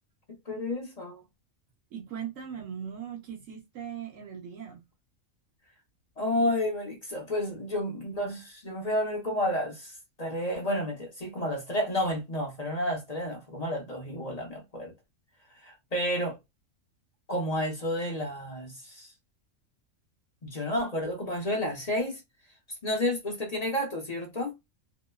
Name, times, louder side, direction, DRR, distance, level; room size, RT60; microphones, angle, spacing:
voice 1, 0.3-1.2 6.2-14.9 15.6-16.4 17.3-19.1 20.4-22.2 22.8-24.5, left 1 dB, 40° left, 0.6 m, -31 dB
voice 2, 1.9-4.8, right 8 dB, 75° right, 1.0 m, -39 dB
2.8 x 2.1 x 2.2 m
omnidirectional pair, 1.4 m